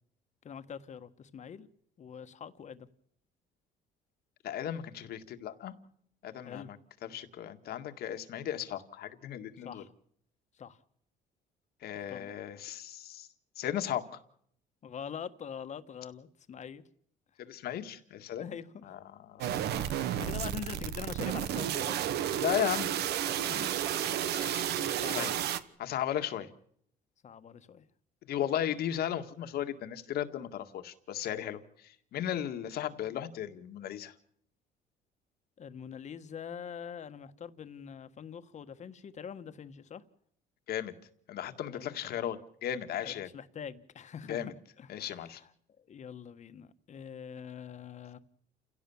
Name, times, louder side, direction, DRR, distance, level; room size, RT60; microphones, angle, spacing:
voice 1, 0.4-1.7 2.0-2.9 6.4-6.7 9.6-9.9 10.6-10.8 11.9-12.3 14.8-16.8 18.4-19.0 19.8-22.1 23.5-23.8 24.3-25.4 27.2-27.8 35.6-40.0 41.7-42.2 43.0-45.5 45.9-48.2, left 7 dB, 45° left, 1.5 m, -44 dB
voice 2, 4.4-5.7 6.2-6.8 7.0-9.8 11.8-13.3 13.6-14.1 17.5-18.6 18.8-19.0 19.3-19.5 22.4-22.9 24.3-25.3 25.8-26.5 28.3-34.1 40.7-40.9 41.3-43.3 44.2-44.5 44.9-45.4, left 10 dB, 70° left, 1.9 m, -36 dB
sound 1, 19.4-25.6, right 10 dB, 75° right, 1.3 m, -32 dB
29.0 x 17.0 x 7.2 m
cardioid pair, 110°, 17 cm